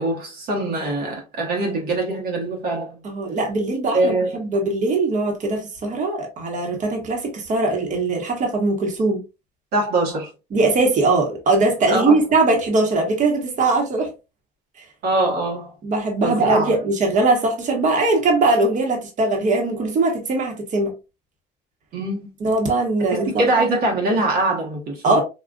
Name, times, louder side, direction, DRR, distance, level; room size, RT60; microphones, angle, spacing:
voice 1, 0.0-3.0 3.9-4.4 5.8-5.9 9.7-10.3 11.9-12.1 15.0-15.7 16.2-16.7 21.9-22.3 23.1-25.2, right 2 dB, 70° right, 1.0 m, -23 dB
voice 2, 3.0-9.2 10.5-14.1 15.8-20.9 22.4-23.4 25.0-25.2, right 2 dB, 45° right, 1.1 m, -20 dB
3.7 x 2.3 x 2.3 m
cardioid pair, 110°, 17 cm